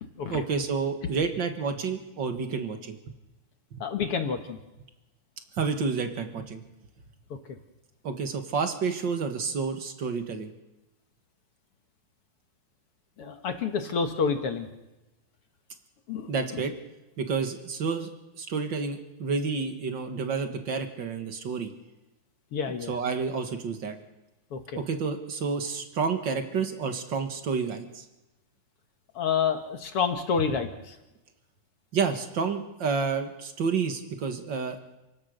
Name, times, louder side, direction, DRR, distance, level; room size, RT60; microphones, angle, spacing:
voice 1, 0.3-3.0 3.7-3.8 5.6-6.6 8.0-10.5 16.3-16.7 17.2-18.1 18.4-21.7 22.7-24.0 24.8-28.0 31.9-34.8, right 5 dB, 45° right, 6 dB, 1.9 m, -29 dB
voice 2, 3.8-4.6 13.2-14.7 16.1-16.6 22.5-22.9 24.5-24.8 29.2-31.0, left 6 dB, 55° left, 6 dB, 1.9 m, -29 dB
28.5 x 17.0 x 6.6 m, 1.0 s
omnidirectional pair, 3.7 m